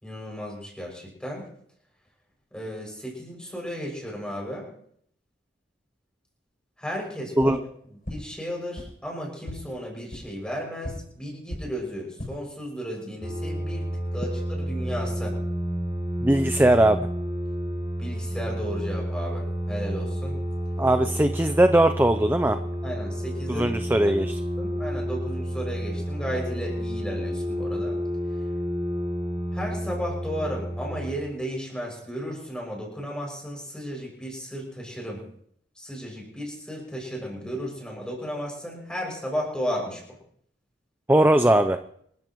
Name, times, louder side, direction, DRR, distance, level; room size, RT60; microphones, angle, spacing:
voice 1, 0.0-1.4 2.5-4.7 6.8-7.6 8.1-13.9 14.1-15.3 18.0-20.4 22.8-23.7 24.0-24.1 24.6-28.0 29.5-35.2 35.8-40.0, equal, 5° left, -1 dB, 6.5 m, -34 dB
sound 1, 7.3-7.5 8.0-8.1 8.7-8.8 9.4-9.5 10.1-10.2 10.8-10.9 11.5-11.6 12.0-12.3, equal, 50° left, 7.9 m, -35 dB
sound 2, 13.2-31.1, equal, 30° right, 4.1 m, -30 dB
voice 2, 16.2-17.0 20.8-22.6 23.5-24.4 41.1-41.8, right 1 dB, 10° right, 9 dB, 0.5 m, -20 dB
27.0 x 14.0 x 3.1 m, 0.66 s
head